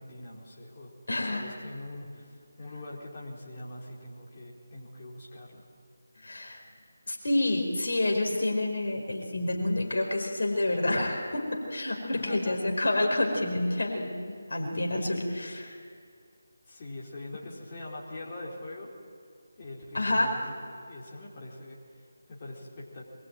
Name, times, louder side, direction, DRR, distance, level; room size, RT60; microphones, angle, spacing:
voice 1, 0.0-0.9 1.3-5.6 12.1-12.6 16.7-18.9 19.6-23.1, left 2 dB, 30° left, -5 dB, 4.6 m, -43 dB
voice 2, 1.1-1.5 6.2-6.6 7.1-15.8 19.9-20.3, left 1 dB, 60° left, 1 dB, 4.8 m, -28 dB
24.5 x 22.0 x 9.0 m, 2.2 s
figure-of-eight pair, 160°, 0 cm